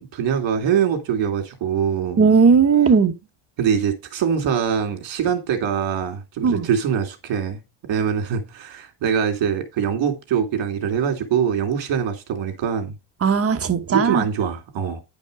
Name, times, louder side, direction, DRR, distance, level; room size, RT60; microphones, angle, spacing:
voice 1, 0.0-2.2 3.6-7.6 7.9-12.9 13.9-15.0, right 7 dB, 65° right, 2.5 m, -23 dB
voice 2, 2.2-3.1 6.4-6.7 13.2-14.2, right 5 dB, 30° right, 1.0 m, -16 dB
10.0 x 5.3 x 4.9 m
cardioid pair, 135°, 49 cm